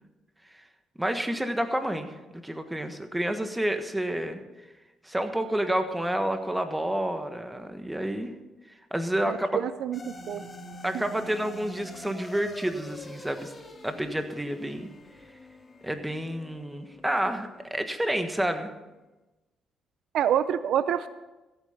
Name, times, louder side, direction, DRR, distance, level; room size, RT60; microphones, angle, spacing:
voice 1, 1.0-2.1 2.4-4.4 5.0-8.3 8.9-9.6 10.8-13.5 13.8-14.9 15.8-18.7, right 1 dB, 10° right, 7 dB, 1.4 m, -29 dB
voice 2, 9.2-10.4 10.9-11.0 20.1-21.1, right 9 dB, 75° right, 14 dB, 0.5 m, -27 dB
sound 1, 9.9-18.4, left 1 dB, 25° left, 2.3 m, -46 dB
15.0 x 8.7 x 5.8 m, 1.1 s
cardioid pair, 90°, 0 cm